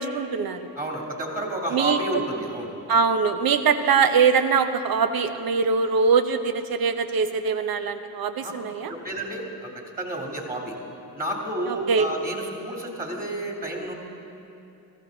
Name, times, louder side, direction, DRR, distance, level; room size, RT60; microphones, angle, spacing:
voice 1, 0.0-0.6 1.7-2.0 2.9-8.9 11.9-12.1, right 5 dB, 55° right, 9 dB, 1.0 m, -22 dB
voice 2, 0.7-2.7 8.4-8.5 8.8-9.7 10.0-10.7 11.2-13.9, right 1 dB, 20° right, -1 dB, 3.3 m, -30 dB
15.0 x 14.5 x 4.0 m, 2.8 s
hypercardioid pair, 45°, 42 cm